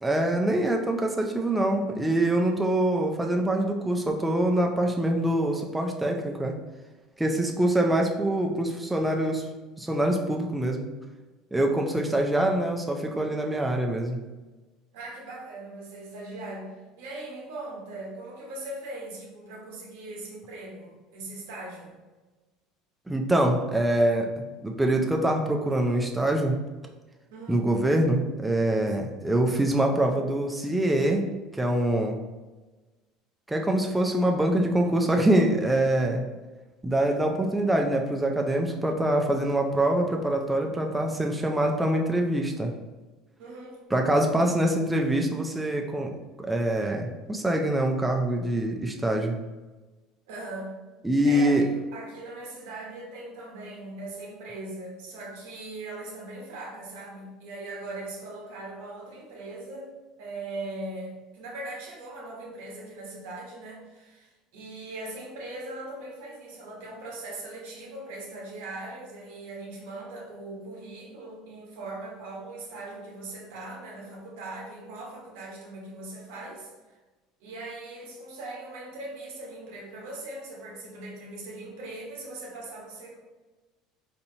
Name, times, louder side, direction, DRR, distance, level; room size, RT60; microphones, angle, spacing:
voice 1, 0.0-6.5 7.2-9.5 9.8-10.9 11.5-14.2 23.1-26.6 27.5-32.2 33.5-36.2 36.8-42.7 43.9-46.1 46.4-49.3 51.0-51.6, right 1 dB, 5° right, 1 dB, 0.4 m, -24 dB
voice 2, 14.9-16.7 17.0-21.9 27.3-27.6 43.4-43.8 50.3-50.7 51.2-59.9 60.2-77.0 77.4-83.2, right 2 dB, 85° right, -1 dB, 1.0 m, -40 dB
4.2 x 2.8 x 2.7 m, 1.2 s
supercardioid pair, 125°, 0 cm